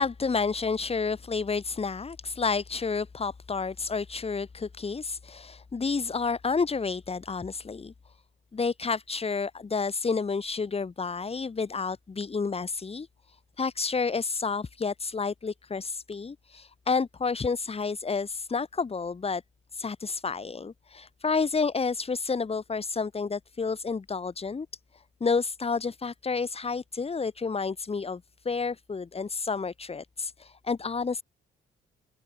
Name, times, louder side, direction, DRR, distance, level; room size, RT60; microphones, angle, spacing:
voice 1, 0.0-7.9 8.5-13.1 13.6-19.4 19.7-24.7 25.2-31.2, left 4 dB, 30° left, 2.8 m, -30 dB
cardioid pair, 90°, 20 cm